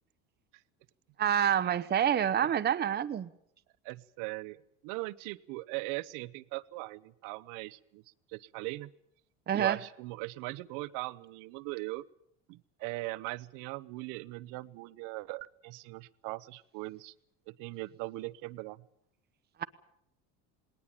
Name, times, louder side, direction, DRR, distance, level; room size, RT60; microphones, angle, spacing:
voice 1, 1.2-3.3 9.5-9.8 19.6-19.7, right 9 dB, 30° right, 0.9 m, -27 dB
voice 2, 3.8-8.0 8.3-8.9 9.5-12.0 12.5-17.1 17.5-18.8, right 21 dB, 75° right, 0.9 m, -40 dB
19.5 x 19.0 x 8.9 m
supercardioid pair, 105°, 32 cm